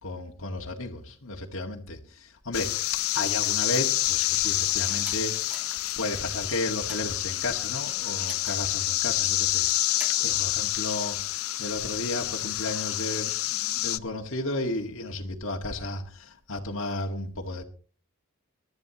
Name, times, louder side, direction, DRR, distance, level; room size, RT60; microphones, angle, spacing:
voice 1, 0.0-5.6 6.0-11.2 11.6-17.6, left 2 dB, 65° left, 1.8 m, -33 dB
sound 1, 2.5-14.0, left 15 dB, 85° left, 0.6 m, -28 dB
sound 2, 5.0-5.2 5.5-5.8 6.3-7.1 8.3-8.7 9.5-10.2, equal, 5° right, 2.6 m, -43 dB
23.5 x 12.0 x 2.9 m
head